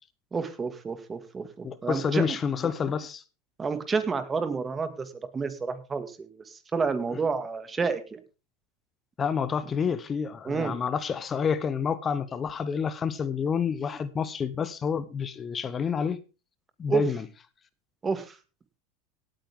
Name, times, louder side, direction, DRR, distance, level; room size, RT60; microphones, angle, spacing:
voice 1, 0.3-2.4 3.6-8.0 10.4-10.8 16.9-17.0 18.0-18.4, right 5 dB, 20° right, 2.1 m, -29 dB
voice 2, 1.6-3.2 9.2-16.2 16.8-17.2, left 6 dB, 25° left, 0.9 m, -29 dB
17.5 x 9.1 x 3.7 m
supercardioid pair, 120°, 0 cm